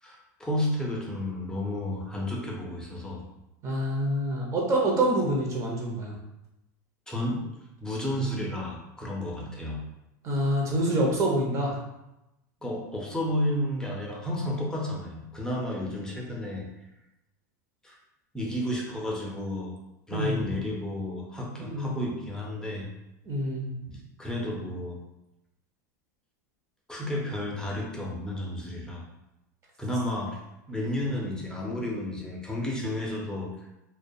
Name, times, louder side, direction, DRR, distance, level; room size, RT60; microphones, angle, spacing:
voice 1, 0.0-3.2 7.1-7.4 7.8-9.8 12.6-16.7 17.8-18.0 18.3-19.7 20.1-22.9 24.2-25.0 26.9-29.0 29.8-30.4 30.7-33.5, left 1 dB, 5° left, -3 dB, 0.5 m, -32 dB
voice 2, 3.6-6.2 10.2-11.8 20.1-20.4 21.6-21.9 23.3-23.7, right 1 dB, 30° right, -2 dB, 0.8 m, -26 dB
2.3 x 2.2 x 2.7 m, 0.92 s
supercardioid pair, 115°, 10 cm